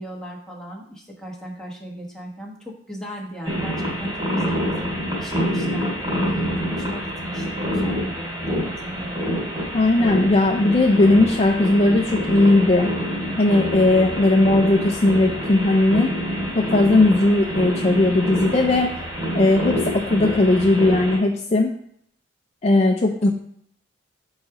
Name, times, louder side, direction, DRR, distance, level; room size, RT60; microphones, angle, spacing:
voice 1, 0.0-9.3 23.2-23.3, right 1 dB, 5° left, -3 dB, 1.1 m, -37 dB
sound 1, 3.4-21.2, equal, 25° right, 2.1 m, -26 dB
voice 2, 9.7-12.9 13.4-16.1 16.5-18.9 19.3-21.8 22.6-23.3, left 2 dB, 35° left, 2 dB, 0.4 m, -18 dB
4.8 x 4.1 x 5.7 m, 0.68 s
head